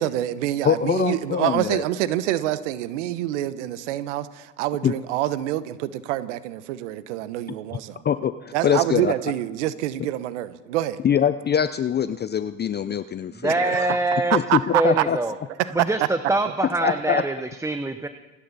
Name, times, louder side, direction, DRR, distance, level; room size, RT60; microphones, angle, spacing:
voice 1, 0.0-8.0 8.5-11.0 13.5-13.9 14.5-15.0 15.6-15.8, right 14 dB, 75° right, 14 dB, 1.0 m, -26 dB
voice 2, 0.6-1.8 4.8-4.9 8.0-9.1 11.0-13.5 14.3-15.2 16.8-17.2, left 8 dB, 30° left, 12 dB, 0.6 m, -23 dB
voice 3, 13.3-14.4 14.7-15.4 15.7-18.1, right 2 dB, 10° right, 9 dB, 0.9 m, -24 dB
27.0 x 10.0 x 4.1 m, 1.1 s
hypercardioid pair, 75°, 36 cm